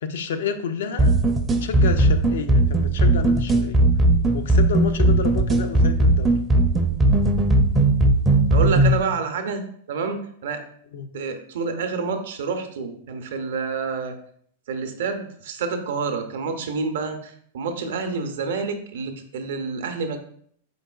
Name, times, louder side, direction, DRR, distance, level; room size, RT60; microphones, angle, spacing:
voice 1, 0.0-1.1 1.5-3.8 4.3-6.4 10.9-11.1, left 6 dB, 70° left, 8 dB, 0.4 m, -30 dB
sound 1, 1.0-9.0, right 2 dB, 20° right, 0.4 m, -18 dB
voice 2, 8.5-10.6 11.1-14.1 14.7-20.2, right 5 dB, 70° right, 6 dB, 0.5 m, -28 dB
3.9 x 3.6 x 2.3 m, 0.63 s
hypercardioid pair, 105°, 0 cm